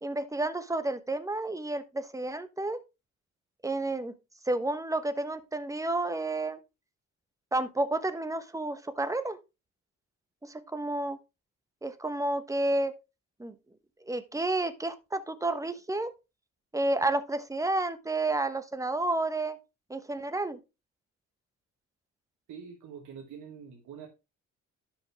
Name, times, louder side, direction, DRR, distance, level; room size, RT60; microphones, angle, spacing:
voice 1, 0.0-2.8 3.6-4.1 4.5-6.6 7.5-9.4 10.4-11.2 11.8-12.9 13.4-13.5 14.1-16.1 16.7-19.6 19.9-20.6, right 2 dB, 10° right, 1.1 m, -30 dB
voice 2, 22.5-24.1, right 7 dB, 75° right, 1.6 m, -45 dB
11.0 x 5.5 x 3.5 m
cardioid pair, 90°, 30 cm